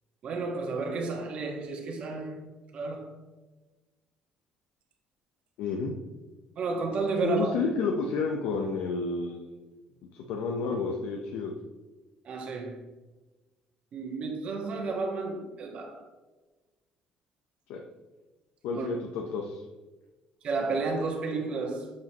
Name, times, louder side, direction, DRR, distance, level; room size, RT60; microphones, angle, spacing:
voice 1, 0.2-2.4 2.7-3.2 6.6-7.5 12.3-12.8 13.9-16.1 18.7-18.9 20.4-21.9, right 4 dB, 50° right, 1.6 m, -32 dB
voice 2, 5.6-5.9 7.2-9.5 10.1-11.5 17.7-17.8 18.6-19.6, left 4 dB, 90° left, 0.8 m, -30 dB
8.2 x 5.2 x 3.0 m
cardioid pair, 140°, 3 cm